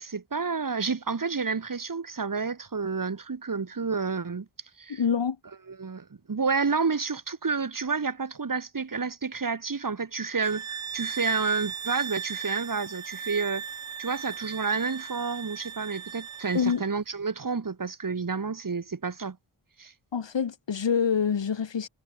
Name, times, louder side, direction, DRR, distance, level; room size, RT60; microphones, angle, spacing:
voice 1, 0.0-4.5 4.8-5.0 5.7-13.6 14.0-19.4 19.8-19.9, right 4 dB, 45° right, 4.1 m, -30 dB
voice 2, 4.9-5.4 16.5-16.9 20.1-21.9, left 7 dB, 65° left, 3.4 m, -26 dB
sound 1, 10.4-16.8, right 7 dB, 80° right, 5.1 m, -38 dB
wide cardioid pair, 105°, 46 cm